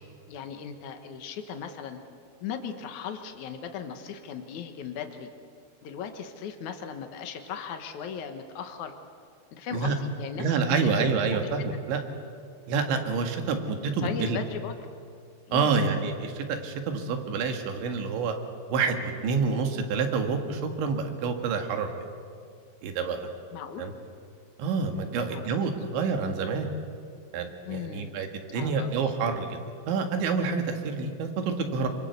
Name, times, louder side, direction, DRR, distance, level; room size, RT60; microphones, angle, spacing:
voice 1, 0.3-2.0 2.4-5.3 5.8-9.0 9.5-11.0 14.0-14.7 15.5-15.9 23.5-23.8 25.1-25.5 27.6-28.1 28.5-29.1, left 7 dB, 80° left, 6 dB, 1.7 m, -37 dB
voice 2, 10.4-12.0 12.7-14.4 15.5-18.4 18.7-21.9 22.8-23.3 23.8-23.9 24.6-26.7 27.3-29.6 29.9-31.9, right 5 dB, 75° right, 5 dB, 4.1 m, -28 dB
25.5 x 24.5 x 8.2 m, 2.2 s
omnidirectional pair, 5.5 m